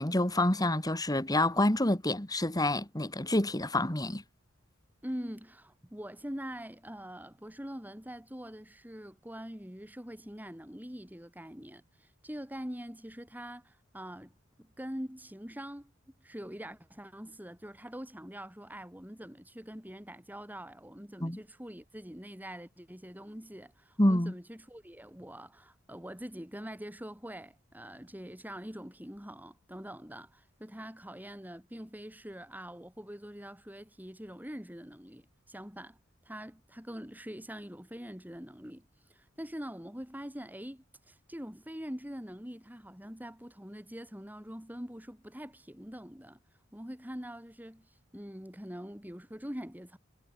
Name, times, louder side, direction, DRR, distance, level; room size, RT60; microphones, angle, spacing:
voice 1, 0.0-4.2 21.2-21.4 24.0-24.3, left 1 dB, 20° left, 2.7 m, -27 dB
voice 2, 5.0-14.3 14.6-15.9 16.2-36.0 36.3-46.4 46.7-47.9 48.1-50.0, equal, 10° right, 7.6 m, -44 dB
head